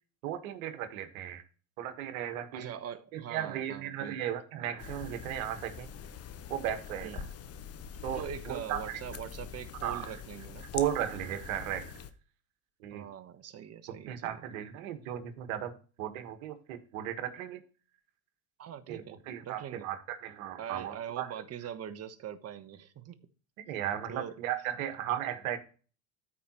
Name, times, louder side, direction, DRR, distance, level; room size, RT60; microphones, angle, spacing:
voice 1, 0.2-1.4 1.8-2.7 3.1-5.9 6.5-7.2 8.0-9.0 9.8-10.1 10.7-11.9 12.8-13.1 14.1-17.6 18.9-21.3 23.7-25.6, right 10 dB, 75° right, 9 dB, 1.6 m, -36 dB
voice 2, 2.5-4.2 7.0-7.3 8.1-10.7 12.9-14.4 18.6-19.9 20.6-23.2 24.1-24.3, right 9 dB, 35° right, 9 dB, 1.2 m, -42 dB
sound 1, 4.8-12.1, left 7 dB, 35° left, 1.0 m, -44 dB
13.5 x 5.0 x 3.0 m, 0.37 s
hypercardioid pair, 90°, 41 cm